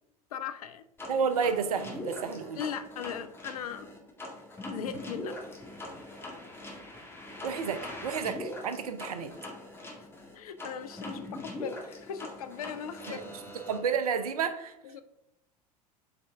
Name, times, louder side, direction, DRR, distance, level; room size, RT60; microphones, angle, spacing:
voice 1, 0.3-0.9 2.5-3.9 4.7-5.4 10.0-10.1 10.3-13.2 14.8-15.0, left 8 dB, 65° left, 11 dB, 0.6 m, -38 dB
sound 1, 1.0-13.8, left 1 dB, 10° left, 1.7 m, -42 dB
voice 2, 1.1-2.6 7.4-9.3 13.1-13.2 13.7-14.8, right 6 dB, 65° right, 10 dB, 0.7 m, -31 dB
7.7 x 4.3 x 3.6 m, 0.84 s
figure-of-eight pair, 75°, 20 cm